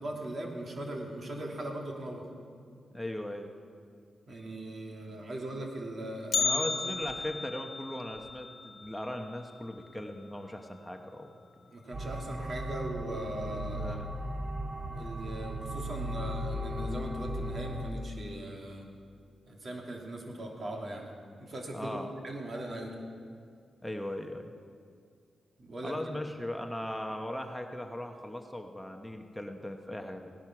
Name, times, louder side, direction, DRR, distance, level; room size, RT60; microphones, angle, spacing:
voice 1, 0.0-2.2 4.3-6.6 11.7-14.0 14.9-18.8 19.5-21.1 21.4-22.0 22.2-22.9 25.6-25.9, right 1 dB, 50° right, 0 dB, 2.7 m, -39 dB
voice 2, 2.9-3.5 6.4-11.3 13.7-14.1 21.7-22.1 23.8-24.5 25.8-30.3, left 1 dB, 5° left, 4 dB, 1.0 m, -38 dB
Bell, 6.3-10.4 10.7-10.8 11.3-11.4 12.2-12.3 13.0-13.3 13.7-13.8, left 5 dB, 60° left, 0.5 m, -35 dB
sound 1, 11.9-17.9, equal, 30° right, 1.0 m, -37 dB
17.0 x 10.5 x 6.1 m, 2.2 s
cardioid pair, 75°, 0 cm